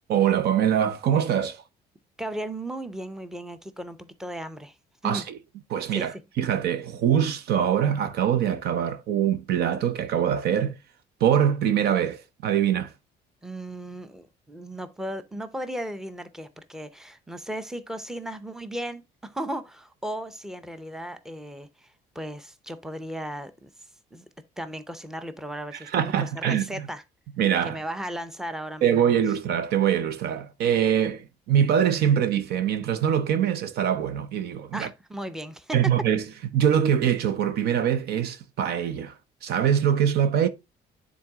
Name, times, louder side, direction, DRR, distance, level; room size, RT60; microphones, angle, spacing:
voice 1, 0.1-1.6 5.0-5.4 5.7-10.8 11.2-12.9 25.9-26.9 27.4-27.8 28.8-34.9 35.7-36.2 36.5-40.5, right 9 dB, 70° right, 0.8 m, -23 dB
voice 2, 2.2-4.8 5.0-5.2 5.9-6.2 13.4-24.2 24.6-27.0 27.6-29.0 34.7-35.8, right 1 dB, 5° right, 0.7 m, -36 dB
9.4 x 4.0 x 3.6 m
cardioid pair, 110°, 17 cm